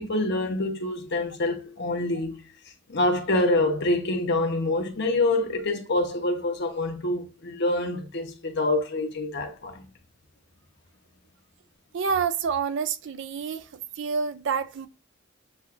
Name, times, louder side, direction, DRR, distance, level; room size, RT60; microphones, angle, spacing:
voice 1, 0.0-2.5 2.9-9.8, left 2 dB, 55° left, 0.9 m, -26 dB
voice 2, 11.9-13.7 14.0-14.9, right 6 dB, 60° right, 0.4 m, -28 dB
7.3 x 2.5 x 2.4 m
head